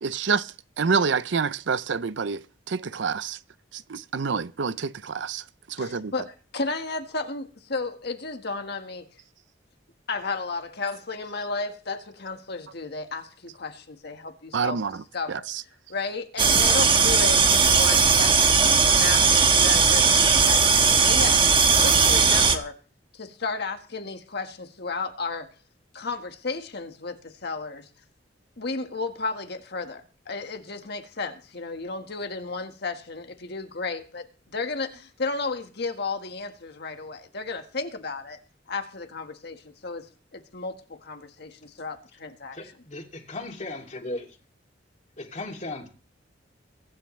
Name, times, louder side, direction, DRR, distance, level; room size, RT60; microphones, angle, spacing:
voice 1, 0.0-3.4 3.7-6.1 14.5-15.0 15.3-15.6, right 5 dB, 70° right, 0.6 m, -28 dB
voice 2, 5.8-6.3 6.5-9.1 10.1-14.8 15.1-15.5 15.9-22.7 23.1-25.5 25.9-27.9 28.6-38.4 38.7-40.1 40.3-42.6, left 3 dB, 60° left, 1.6 m, -33 dB
sound 1, 16.4-22.6, right 5 dB, 30° right, 1.2 m, -18 dB
voice 3, 42.5-44.3 45.3-45.9, left 2 dB, 40° left, 2.6 m, -36 dB
23.0 x 10.0 x 3.2 m
head